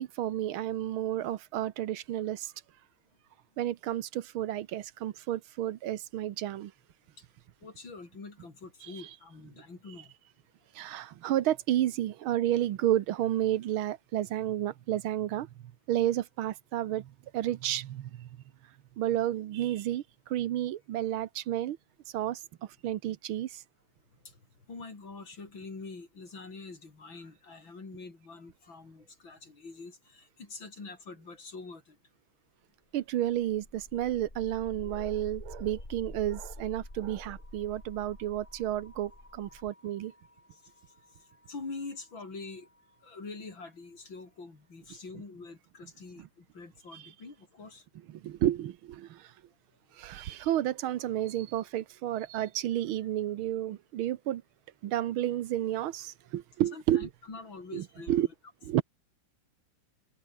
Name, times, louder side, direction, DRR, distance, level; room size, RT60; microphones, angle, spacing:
voice 1, 0.0-2.5 3.6-6.7 8.8-8.9 10.8-15.5 15.9-18.3 19.0-21.8 22.1-22.4 22.8-23.6 32.9-40.1 46.2-46.3 46.9-47.0 48.1-49.3 50.0-54.4 54.8-57.1 57.7-58.3 58.7-58.8, right 12 dB, 90° right, 1.8 m, -31 dB
voice 2, 7.6-10.1 24.7-32.0 41.5-42.7 43.0-47.8 56.7-58.3, left 3 dB, 70° left, 5.3 m, -45 dB
sound 1, 33.1-43.1, left 1 dB, 25° left, 6.1 m, -48 dB
open air
omnidirectional pair, 2.2 m